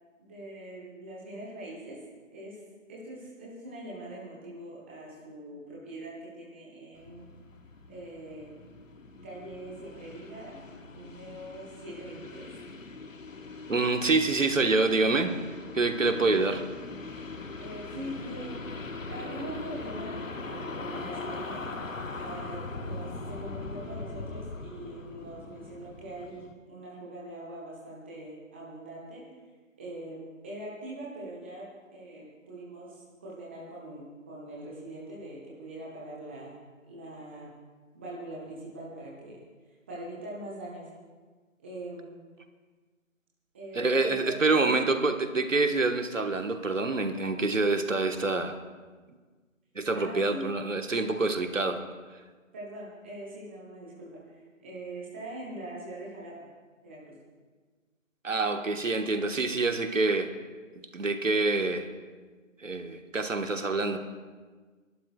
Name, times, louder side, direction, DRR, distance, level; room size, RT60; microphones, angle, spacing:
voice 1, 0.2-2.0 2.3-2.6 2.9-7.3 7.9-8.5 9.2-10.6 10.9-12.5 17.6-18.5 19.1-21.6 22.2-29.2 29.8-36.6 36.9-37.5 37.9-39.4 39.9-40.9 41.6-42.1 43.5-44.8 49.9-50.4 52.5-56.5 56.8-57.1, right 1 dB, 10° right, -5 dB, 0.9 m, -42 dB
sound 1, 6.9-26.5, left 3 dB, 75° left, 1.1 m, -41 dB
voice 2, 13.7-15.4 15.7-16.6 43.7-48.6 49.7-51.8 58.2-60.3 60.9-61.9 62.6-64.0, right 3 dB, 70° right, 6 dB, 1.3 m, -26 dB
30.0 x 12.0 x 2.3 m, 1.4 s
figure-of-eight pair, 150°, 40 cm